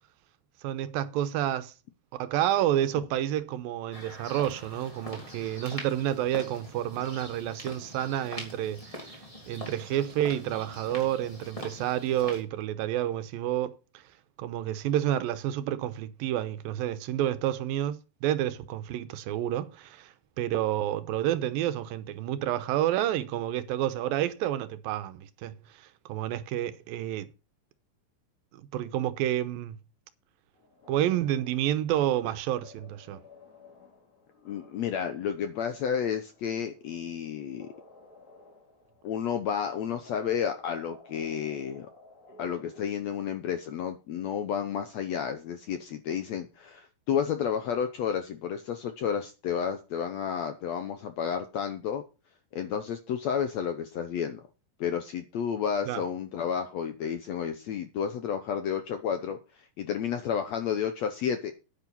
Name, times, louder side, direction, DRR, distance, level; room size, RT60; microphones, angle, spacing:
voice 1, 0.6-1.7 2.1-13.8 14.4-27.3 28.5-29.8 30.9-33.2 55.9-56.0, right 12 dB, 85° right, 2.6 m, -29 dB
sound 1, 3.9-12.4, equal, 10° left, 3.1 m, -43 dB
sound 2, 30.5-42.9, left 3 dB, 45° left, 6.2 m, -56 dB
voice 2, 34.4-37.7 39.0-41.9 42.4-52.0 52.5-54.4 54.8-61.5, left 8 dB, 70° left, 1.6 m, -31 dB
10.0 x 9.2 x 5.5 m
omnidirectional pair, 4.1 m